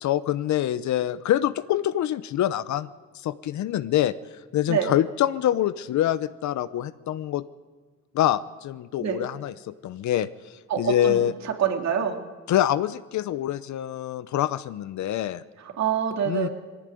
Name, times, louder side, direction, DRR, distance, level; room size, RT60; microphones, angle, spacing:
voice 1, 0.0-2.9 3.2-4.1 4.5-7.4 8.1-10.3 10.8-11.3 12.5-15.4 16.2-16.5, left 12 dB, 70° left, 14 dB, 0.7 m, -25 dB
voice 2, 10.7-11.2 11.6-12.2 15.6-16.5, right 8 dB, 65° right, 3 dB, 2.6 m, -25 dB
21.0 x 16.0 x 9.2 m, 1.4 s
cardioid pair, 90°, 30 cm